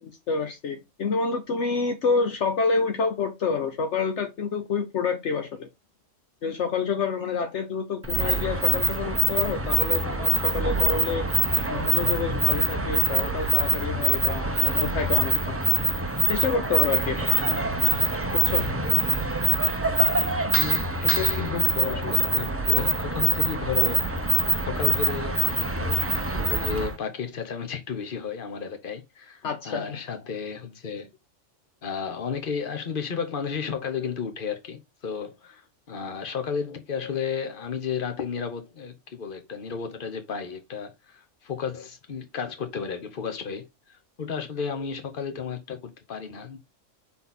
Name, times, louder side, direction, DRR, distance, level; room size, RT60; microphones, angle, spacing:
voice 1, 0.0-5.7 6.4-11.3 11.7-15.6 16.3-17.3 18.4-18.6 29.4-30.0, left 4 dB, 65° left, 1.1 m, -28 dB
sound 1, 8.0-27.0, right 2 dB, 15° right, 0.5 m, -24 dB
voice 2, 20.5-24.1 24.7-31.1 31.8-35.6 35.9-46.6, left 6 dB, 45° left, 1.2 m, -33 dB
5.6 x 4.1 x 4.0 m
omnidirectional pair, 1.3 m